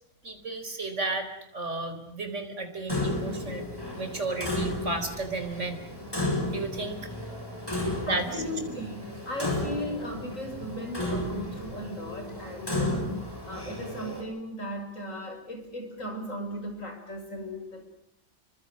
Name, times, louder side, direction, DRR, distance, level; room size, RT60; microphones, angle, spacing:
voice 1, 0.2-1.3 1.5-3.7 4.0-5.8 6.5-7.0 8.1-8.4, right 2 dB, 45° right, 7 dB, 4.6 m, -33 dB
Clock, 2.9-14.2, left 1 dB, 15° left, 7.7 m, -33 dB
voice 2, 7.8-13.1 13.4-17.9, equal, 45° left, 5 dB, 6.7 m, -37 dB
28.0 x 25.0 x 6.3 m, 0.78 s
omnidirectional pair, 1.8 m